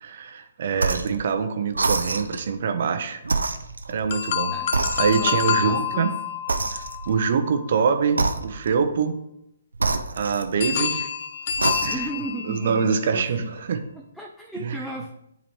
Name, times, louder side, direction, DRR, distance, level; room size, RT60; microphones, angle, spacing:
voice 1, 0.0-3.2 3.9-4.5 5.0-6.1 6.7-9.2 10.2-11.1 11.8-12.1 12.4-13.8 14.6-14.8, right 6 dB, 55° right, 8 dB, 0.8 m, -24 dB
sound 1, 0.7-1.2 1.7-2.5 3.2-4.4 4.7-5.5 6.5-7.2 8.1-8.8 9.7-10.9 11.5-12.2, right 3 dB, 80° right, 0.5 m, -27 dB
sound 2, 4.1-8.2 10.6-12.9, left 8 dB, 45° left, 0.5 m, -28 dB
voice 2, 5.1-6.1 11.9-12.9 13.1-13.5 13.9-15.1, right 1 dB, ahead, 0 dB, 0.6 m, -35 dB
10.0 x 4.0 x 3.2 m, 0.78 s
figure-of-eight pair, 135°, 0 cm